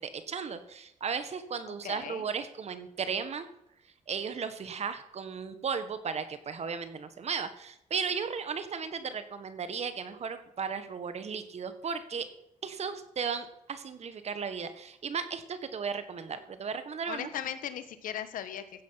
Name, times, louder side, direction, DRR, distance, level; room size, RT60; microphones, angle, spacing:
voice 1, 0.0-3.5 4.1-12.3 12.6-17.3, right 6 dB, 50° right, 11 dB, 1.6 m, -35 dB
voice 2, 1.7-2.3 17.1-18.8, left 10 dB, 75° left, 11 dB, 1.4 m, -38 dB
15.0 x 8.5 x 5.8 m, 0.80 s
cardioid pair, 85°, 14 cm